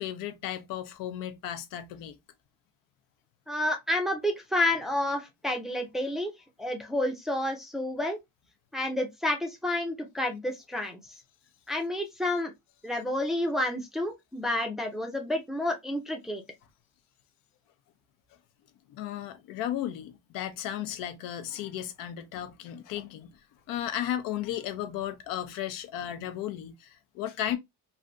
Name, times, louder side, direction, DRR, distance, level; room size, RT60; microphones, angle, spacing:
voice 1, 0.0-2.2 18.9-23.4 23.7-27.6, left 11 dB, 85° left, 0.7 m, -35 dB
voice 2, 3.5-6.3 6.6-8.2 8.7-11.0 11.7-12.5 12.8-16.4, left 1 dB, ahead, 0.4 m, -30 dB
3.2 x 2.5 x 2.6 m
cardioid pair, 170°, 33 cm